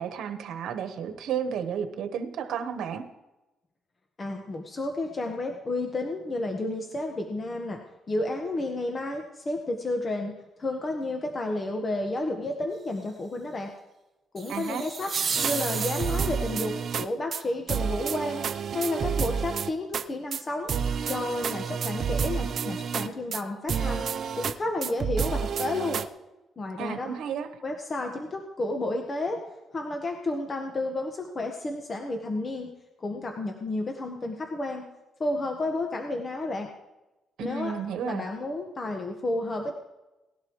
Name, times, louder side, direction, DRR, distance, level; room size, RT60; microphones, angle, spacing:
voice 1, 0.0-3.0 14.5-14.8 26.8-27.5 37.4-38.2, right 7 dB, 80° right, 7 dB, 1.2 m, -32 dB
voice 2, 4.2-7.8 8.1-10.3 10.6-13.7 14.3-15.1 15.4-18.4 18.7-20.7 21.1-24.0 24.3-26.0 26.6-27.1 27.6-29.4 29.7-32.7 33.0-34.8 35.2-36.7 37.4-37.7 38.0-39.8, left 2 dB, 35° left, 3 dB, 1.3 m, -31 dB
sound 1, 14.4-16.5, right 5 dB, 40° right, 1.6 m, -32 dB
sound 2, 15.3-17.1 17.3-17.4 17.7-20.0 20.3-20.4 20.7-23.4 23.7-24.5 24.8-26.1, right 7 dB, 55° right, 0.6 m, -29 dB
18.5 x 11.5 x 3.2 m, 1.0 s
cardioid pair, 90°, 0 cm